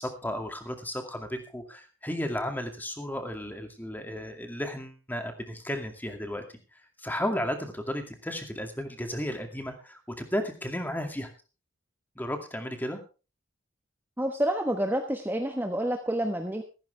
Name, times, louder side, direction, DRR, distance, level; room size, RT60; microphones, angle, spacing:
voice 1, 0.0-6.4 6.7-11.3 12.2-13.0, equal, 10° left, 5 dB, 2.3 m, -34 dB
voice 2, 14.2-16.6, right 1 dB, 10° right, 3 dB, 1.2 m, -28 dB
15.5 x 15.0 x 3.4 m, 0.33 s
head